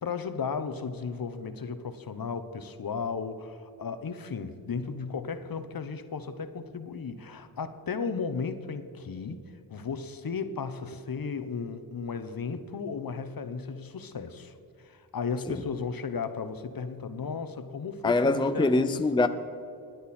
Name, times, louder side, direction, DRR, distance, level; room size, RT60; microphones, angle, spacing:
voice 1, 0.0-9.4 9.7-18.9, left 5 dB, 50° left, 1.0 m, -35 dB
voice 2, 18.0-19.3, left 2 dB, 10° left, 0.5 m, -23 dB
20.0 x 9.3 x 4.3 m
cardioid pair, 70°, 43 cm